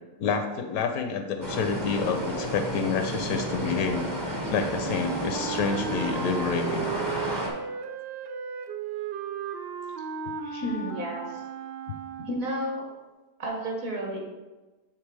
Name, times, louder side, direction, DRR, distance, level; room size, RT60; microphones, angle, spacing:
voice 1, 0.2-4.1 4.5-6.9, left 5 dB, 70° left, 6 dB, 1.0 m, -28 dB
sound 1, 1.4-7.5, right 1 dB, 20° right, 0.6 m, -32 dB
Wind instrument woodwind instrument, 4.8-12.5, right 7 dB, 75° right, 0.5 m, -36 dB
voice 2, 10.4-11.4 12.3-12.8 13.4-14.2, equal, 60° right, -1 dB, 1.8 m, -32 dB
7.5 x 3.5 x 4.7 m, 1.2 s
omnidirectional pair, 1.7 m